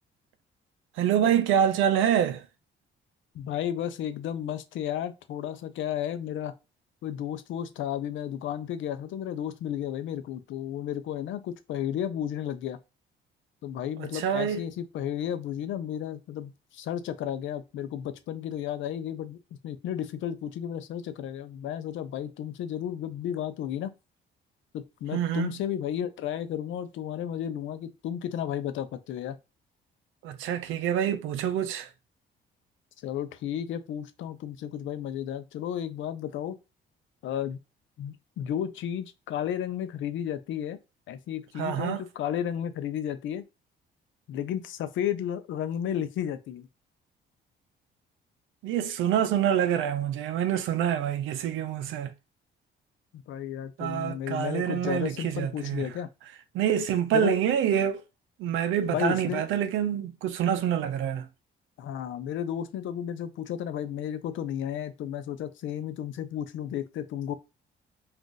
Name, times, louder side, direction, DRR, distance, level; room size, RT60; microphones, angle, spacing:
voice 1, 1.0-2.4 14.1-14.6 25.1-25.5 30.2-31.9 41.6-42.0 48.6-52.1 53.8-55.9 56.5-58.0 58.4-61.3, right 9 dB, 90° right, 0.5 m, -26 dB
voice 2, 3.3-6.5 7.0-12.8 13.6-19.4 19.6-23.9 24.7-29.4 33.0-36.6 37.2-37.6 38.0-40.8 41.1-43.4 44.3-46.7 53.3-56.1 57.1-57.3 58.9-59.4 61.8-67.3, left 10 dB, 80° left, 0.5 m, -33 dB
2.5 x 2.4 x 3.8 m
cardioid pair, 90°, 20 cm